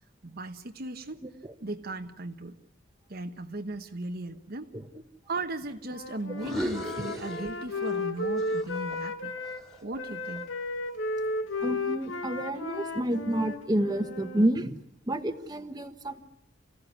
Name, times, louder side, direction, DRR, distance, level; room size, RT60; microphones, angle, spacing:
voice 1, 0.2-1.2 1.6-2.6 3.1-4.7 5.3-9.4 9.8-10.5, right 2 dB, 50° right, 6 dB, 1.1 m, -37 dB
Wind instrument woodwind instrument, 5.8-9.6 10.0-14.5, left 2 dB, 85° left, 1.9 m, -34 dB
sound 1, 6.3-8.1 8.4-10.6, equal, ahead, 2.5 m, -38 dB
voice 2, 11.6-16.2, right 1 dB, 20° right, 6 dB, 1.3 m, -29 dB
27.5 x 16.0 x 9.7 m, 0.78 s
head